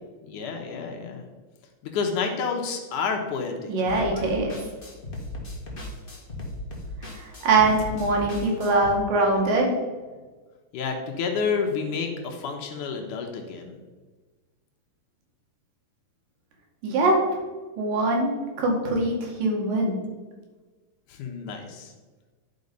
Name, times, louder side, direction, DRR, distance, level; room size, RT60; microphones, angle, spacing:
voice 1, 0.2-1.2 1.8-4.3 10.7-13.7 21.1-21.9, left 5 dB, 70° left, 3 dB, 2.5 m, -30 dB
voice 2, 3.7-4.5 7.0-9.8 16.8-17.2 17.8-18.3 18.6-20.0, right 2 dB, 85° right, 0 dB, 3.5 m, -23 dB
sound 1, 3.9-8.9, left 1 dB, 30° left, 1.1 m, -37 dB
11.0 x 5.3 x 5.3 m, 1.3 s
omnidirectional pair, 3.8 m